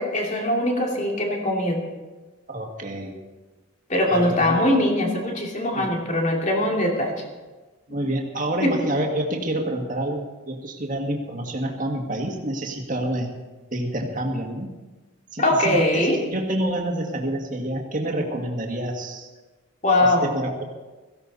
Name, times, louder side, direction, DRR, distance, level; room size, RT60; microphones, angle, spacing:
voice 1, 0.0-1.8 3.9-7.1 7.9-8.0 8.6-8.8 15.4-16.2 19.8-20.3, left 1 dB, 35° left, 0 dB, 2.6 m, -21 dB
voice 2, 2.5-3.1 4.1-4.6 5.7-5.9 7.9-13.3 13.7-14.7 15.3-19.3 20.0-20.6, right 1 dB, 40° right, 1 dB, 2.1 m, -28 dB
17.0 x 15.5 x 4.2 m, 1.2 s
head